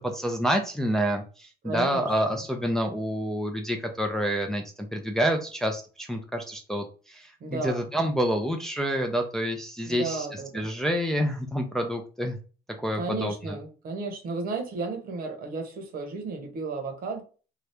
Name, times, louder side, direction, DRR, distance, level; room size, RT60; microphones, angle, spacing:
voice 1, 0.0-4.6 4.9-10.3 10.5-12.4 12.8-13.6, equal, 5° left, 2 dB, 0.5 m, -28 dB
voice 2, 1.6-2.4 7.4-7.9 9.9-10.7 13.0-17.2, right 4 dB, 60° right, 3 dB, 1.0 m, -33 dB
2.8 x 2.3 x 3.3 m, 0.37 s
cardioid pair, 110°, 17 cm